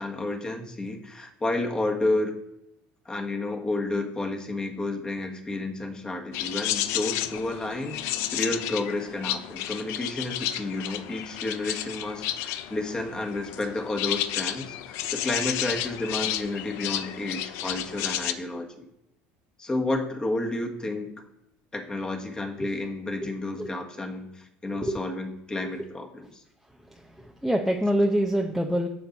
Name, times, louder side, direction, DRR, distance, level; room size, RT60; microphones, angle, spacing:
voice 1, 0.0-2.4 3.0-18.9 19.6-21.2 21.7-26.4, left 2 dB, 15° left, 2 dB, 1.5 m, -31 dB
sound 1, 6.3-18.3, left 12 dB, 70° left, 0.6 m, -32 dB
voice 2, 24.7-25.0 26.9-28.9, equal, ahead, 1 dB, 0.7 m, -26 dB
10.0 x 6.9 x 4.0 m, 0.84 s
supercardioid pair, 115°, 5 cm